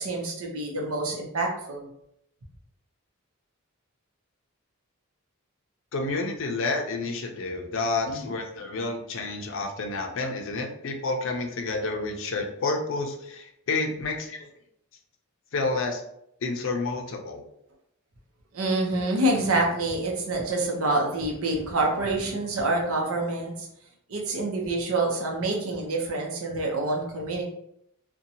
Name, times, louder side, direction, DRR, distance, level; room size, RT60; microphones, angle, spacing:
voice 1, 0.0-1.9 8.1-8.3 18.5-23.7 24.1-27.4, right 2 dB, 75° right, 0 dB, 0.7 m, -27 dB
voice 2, 5.9-14.5 15.5-16.0 16.4-17.4, left 3 dB, 60° left, 3 dB, 0.5 m, -29 dB
2.6 x 2.2 x 2.7 m, 0.75 s
head